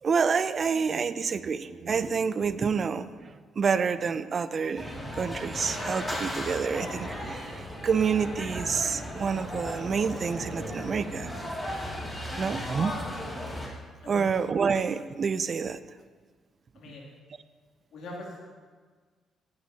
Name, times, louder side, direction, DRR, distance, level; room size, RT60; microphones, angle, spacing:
voice 1, 0.0-11.3 12.4-12.9 14.1-15.8, right 6 dB, 45° right, 14 dB, 0.4 m, -28 dB
sound 1, 4.8-13.7, equal, 10° left, 2.3 m, -36 dB
voice 2, 12.0-12.5 14.0-14.3 16.7-17.0 17.9-18.4, left 2 dB, 75° left, -2 dB, 2.7 m, -43 dB
15.5 x 9.5 x 2.8 m, 1.5 s
cardioid pair, 90°, 0 cm